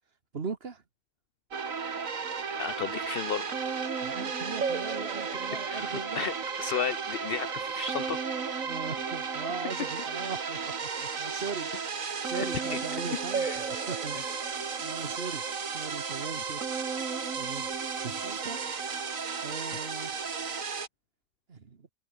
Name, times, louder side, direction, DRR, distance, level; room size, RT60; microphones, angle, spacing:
voice 1, 0.3-0.8 4.0-6.3 8.6-16.6 17.3-17.7 18.0-18.7 19.4-20.2 21.5-21.9, right 5 dB, 45° right, 1.6 m, -40 dB
sound 1, 1.5-20.9, right 5 dB, 70° right, 2.3 m, -33 dB
voice 2, 2.5-3.6 5.7-6.3 6.6-8.2 12.3-12.4 12.7-12.8 13.4-13.6, left 6 dB, 65° left, 0.6 m, -34 dB
omnidirectional pair, 1.5 m